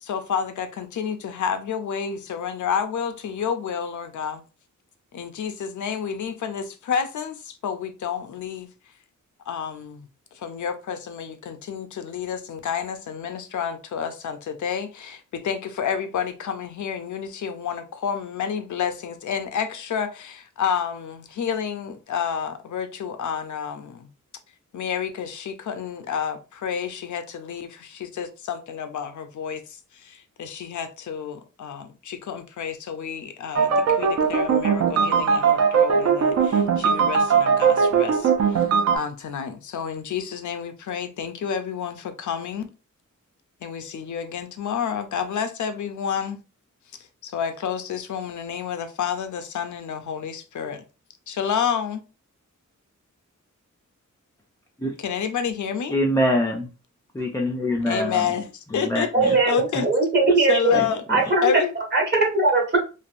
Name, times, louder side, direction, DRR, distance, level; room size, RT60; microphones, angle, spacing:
voice 1, 0.0-4.4 5.1-8.7 9.5-10.1 10.3-24.1 24.7-42.7 43.6-46.4 47.0-50.8 51.3-52.0 55.0-56.0 57.8-59.9 60.4-61.0 61.4-61.7, left 7 dB, 70° left, 0.5 m, -30 dB
sound 1, 33.5-39.0, right 6 dB, 55° right, 0.5 m, -20 dB
voice 2, 55.9-56.7 57.1-58.2 58.7-59.4 59.8-59.9 60.7-60.9, left 1 dB, 10° left, 0.3 m, -24 dB
voice 3, 59.1-60.8 61.1-61.5 61.9-62.8, right 3 dB, 35° right, 1.0 m, -20 dB
3.3 x 2.5 x 2.4 m
wide cardioid pair, 170°, 31 cm